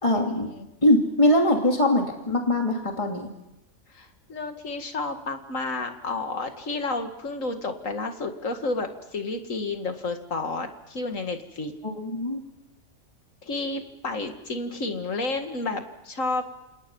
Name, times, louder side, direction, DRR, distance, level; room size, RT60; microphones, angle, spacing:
voice 1, 0.0-0.5 0.8-3.3 11.8-12.4, left 1 dB, 20° left, 1 dB, 2.8 m, -22 dB
voice 2, 3.9-11.7 13.4-16.5, left 3 dB, 65° left, 6 dB, 2.5 m, -31 dB
28.5 x 28.0 x 5.5 m, 0.92 s
omnidirectional pair, 1.5 m